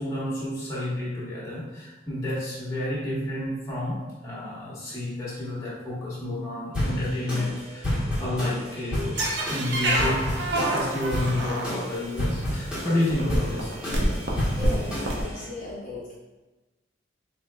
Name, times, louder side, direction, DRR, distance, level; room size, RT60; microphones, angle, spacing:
voice 1, 0.0-9.2 9.5-10.2 10.5-13.7, left 1 dB, 15° left, -9 dB, 1.1 m, -30 dB
sound 1, 6.7-15.4, equal, 5° right, 1.2 m, -31 dB
sound 2, 9.2-12.0 12.8-12.9 13.1-15.2, right 1 dB, 65° right, 0.7 m, -27 dB
voice 2, 14.6-16.1, equal, 40° left, -8 dB, 0.6 m, -36 dB
4.4 x 3.1 x 2.2 m, 1.2 s
head